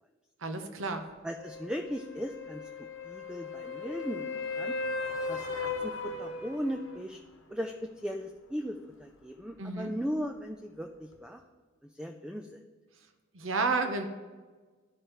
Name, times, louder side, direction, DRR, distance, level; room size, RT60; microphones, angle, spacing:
voice 1, 0.4-1.0 9.6-9.9 13.3-14.1, right 3 dB, 70° right, 7 dB, 0.8 m, -31 dB
voice 2, 1.2-4.8 5.3-7.2 7.5-11.4 11.9-12.6, equal, 5° right, 3 dB, 0.3 m, -37 dB
sound 1, 1.4-7.0 11.1-11.2, left 4 dB, 70° left, 1.0 m, -37 dB
13.0 x 4.8 x 3.1 m, 1.3 s
head